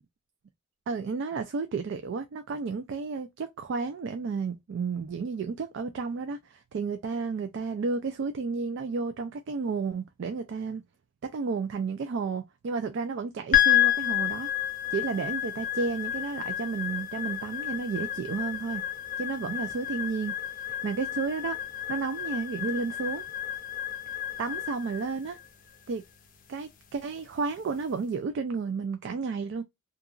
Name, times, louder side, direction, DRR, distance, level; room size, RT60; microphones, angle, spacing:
voice 1, 0.9-10.8 11.2-14.5 14.9-18.8 19.2-21.6 21.9-23.2 24.4-25.4 25.9-26.0 26.5-29.6, right 4 dB, 55° right, 0.3 m, -32 dB
sound 1, 13.5-27.9, left 12 dB, 40° left, 0.5 m, -31 dB
2.8 x 2.4 x 2.3 m
head